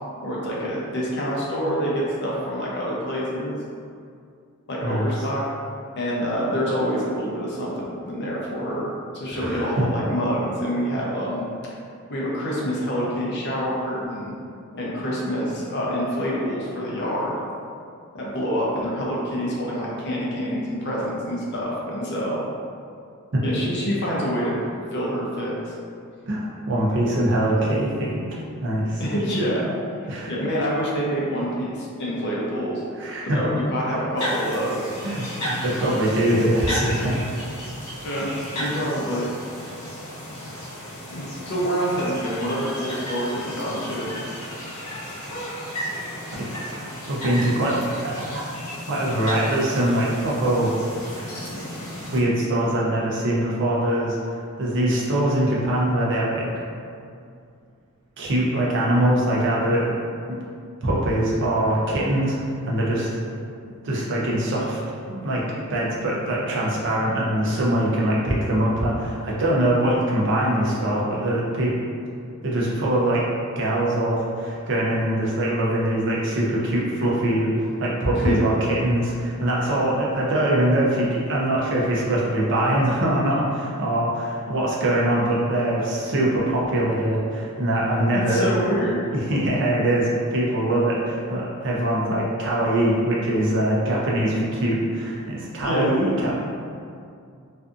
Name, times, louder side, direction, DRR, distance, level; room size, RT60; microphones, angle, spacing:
voice 1, 0.2-3.6 4.7-5.4 6.0-8.9 9.1-11.4 12.1-14.3 14.7-17.4 18.1-22.4 23.4-24.6 24.9-25.7 29.0-29.7 30.3-32.8 33.2-34.8 38.0-39.3 41.1-44.1 78.1-78.4 88.1-89.0 95.6-95.9, equal, 50° left, -5 dB, 0.5 m, -26 dB
voice 2, 9.3-9.7 23.3-23.4 26.3-29.0 30.1-30.3 33.0-33.4 35.0-37.2 40.5-40.6 46.4-46.5 46.7-48.5 48.9-50.7 52.1-54.2 54.6-56.5 58.2-59.9 60.8-63.1 63.8-64.8 65.1-65.4 65.7-71.7 72.4-73.3 73.6-88.5 89.1-96.3, right 1 dB, 55° right, -5 dB, 0.5 m, -23 dB
sound 1, 34.2-52.2, equal, 75° left, 0.8 m, -34 dB
2.5 x 2.4 x 2.4 m, 2.4 s
head